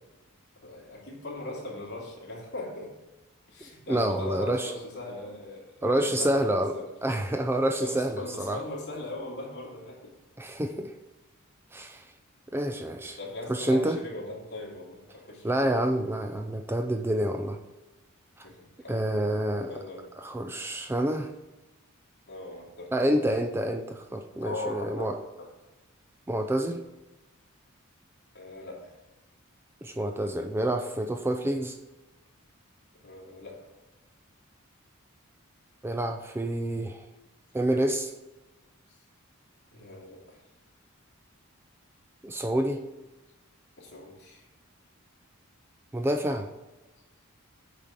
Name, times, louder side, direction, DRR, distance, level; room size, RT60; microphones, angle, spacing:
voice 1, 0.6-2.9 3.5-6.9 7.8-10.2 13.1-15.7 18.4-19.0 19.7-20.1 22.3-22.9 24.4-25.5 28.3-28.9 33.0-33.7 39.7-40.4 43.8-44.5, left 2 dB, 50° left, -3 dB, 2.6 m, -40 dB
voice 2, 3.9-4.7 5.8-8.6 10.4-10.9 11.7-12.0 12.5-13.2 13.5-14.0 15.4-17.6 18.4-18.5 18.9-19.8 20.2-21.3 22.9-25.2 26.3-26.8 29.8-31.8 35.8-37.0 37.5-38.1 42.2-42.8 45.9-46.5, right 1 dB, 10° right, 5 dB, 0.4 m, -28 dB
8.8 x 5.0 x 5.8 m, 1.1 s
head